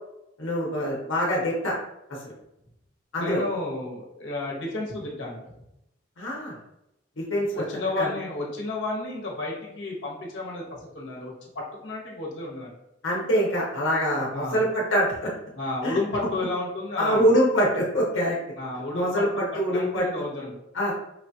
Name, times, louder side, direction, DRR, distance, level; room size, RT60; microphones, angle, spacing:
voice 1, 0.4-1.7 2.2-2.3 3.1-3.4 6.2-6.5 7.2-7.6 8.0-8.1 13.0-15.3 15.8-16.0 17.0-18.4 18.9-20.0 20.7-20.9, equal, 90° left, -4 dB, 0.9 m, -24 dB
voice 2, 3.2-5.4 7.5-12.7 14.3-14.6 15.5-17.3 18.6-20.6, left 2 dB, 65° left, -3 dB, 1.1 m, -32 dB
4.7 x 2.4 x 2.7 m, 0.83 s
head